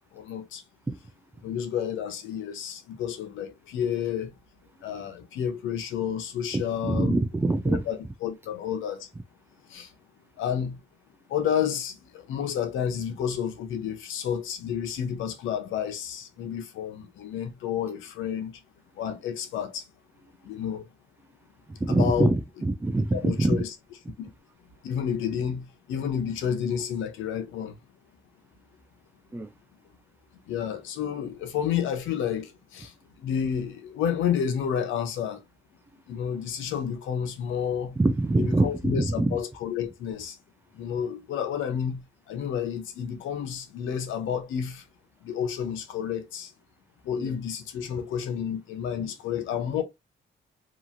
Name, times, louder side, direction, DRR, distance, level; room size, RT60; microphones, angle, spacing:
voice 1, 0.1-0.6 1.4-4.3 4.8-7.1 7.7-9.1 9.7-9.9 10.4-10.8 11.3-18.5 18.9-19.9 20.4-20.9 21.9-22.3 23.1-23.7 24.2-24.3 24.8-27.8 30.5-35.5 36.1-38.0 38.4-40.4 40.7-44.9 45.2-46.5 47.0-49.8, left 8 dB, 80° left, 0.7 m, -30 dB
voice 2, 6.5-7.8 21.8-23.6 29.3-29.5 38.0-39.4 47.2-47.3, right 2 dB, 10° right, 0.3 m, -24 dB
2.9 x 2.4 x 2.5 m
cardioid pair, 90°, 20 cm